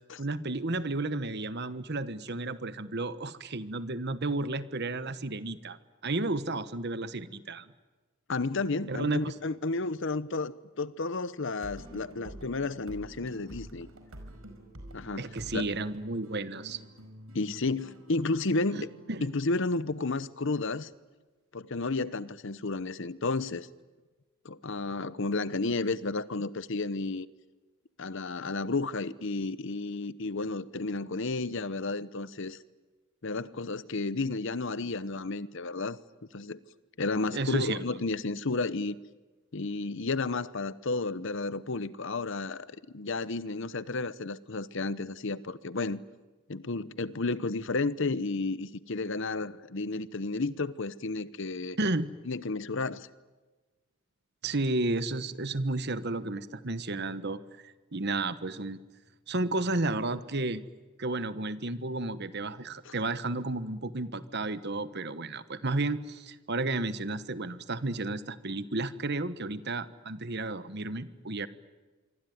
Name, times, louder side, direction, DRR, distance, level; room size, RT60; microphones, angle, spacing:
voice 1, 0.2-5.8 6.0-7.7 8.9-9.3 15.2-16.8 18.7-18.8 19.1-19.3 37.3-38.0 51.8-52.1 54.4-58.8 59.3-60.6 61.0-71.5, right 2 dB, 50° right, 1.2 m, -32 dB
voice 2, 8.3-13.9 14.9-15.7 17.3-18.9 19.2-20.9 21.5-23.7 24.4-27.3 28.0-32.6 33.2-36.0 36.3-36.6 37.0-39.0 39.5-46.0 46.5-51.8 52.3-53.1 62.9-63.0, left 3 dB, 55° left, 0.9 m, -32 dB
sound 1, 11.5-20.9, equal, 75° right, 5.1 m, -49 dB
26.0 x 24.0 x 9.4 m
head